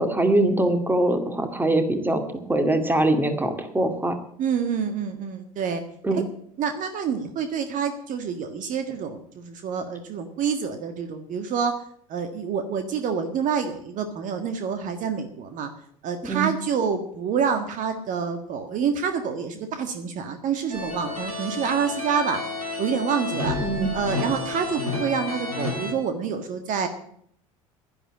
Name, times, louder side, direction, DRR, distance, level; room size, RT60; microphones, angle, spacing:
voice 1, 0.0-2.2 2.5-4.2 6.0-6.2 16.3-16.5 23.6-23.9, right 2 dB, 10° right, 7 dB, 2.3 m, -22 dB
voice 2, 4.4-5.8 6.1-6.2 6.6-11.8 12.1-15.7 16.0-22.4 22.8-23.6 23.9-26.9, right 6 dB, 45° right, 7 dB, 1.6 m, -27 dB
sound 1, 20.7-25.9, left 2 dB, 90° right, 2.6 m, -30 dB
11.5 x 11.0 x 8.5 m, 0.66 s
figure-of-eight pair, 65°, 18 cm